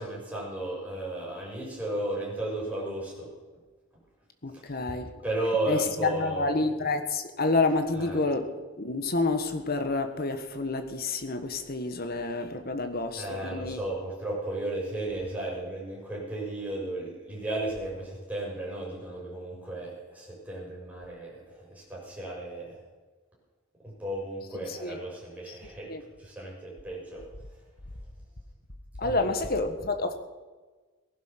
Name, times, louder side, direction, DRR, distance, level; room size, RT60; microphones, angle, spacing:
voice 1, 0.0-3.3 4.5-4.6 5.2-6.7 7.9-8.2 13.2-22.8 23.8-25.9 26.2-27.2 29.0-29.3, right 1 dB, 5° right, 6.8 m, -34 dB
voice 2, 4.4-5.1 5.7-8.5 8.8-13.8 24.7-25.0 25.5-25.6 25.9-26.0 29.0-30.1, left 3 dB, 50° left, 1.5 m, -29 dB
18.5 x 11.5 x 6.0 m
head